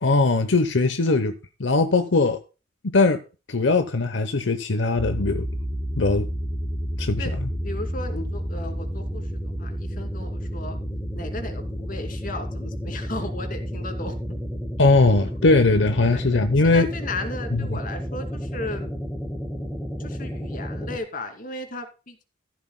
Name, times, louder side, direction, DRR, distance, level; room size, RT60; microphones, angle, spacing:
voice 1, 0.0-1.3 1.6-2.4 2.8-3.2 3.5-5.5 6.0-6.3 7.0-7.5 14.8-16.9 17.5-17.8, left 3 dB, 80° left, 0.9 m, -20 dB
sound 1, 5.0-21.0, equal, 5° left, 2.0 m, -31 dB
voice 2, 7.6-10.8 11.1-14.4 16.1-16.2 16.6-18.9 20.0-22.2, left 2 dB, 50° left, 2.6 m, -35 dB
14.0 x 12.5 x 2.2 m
head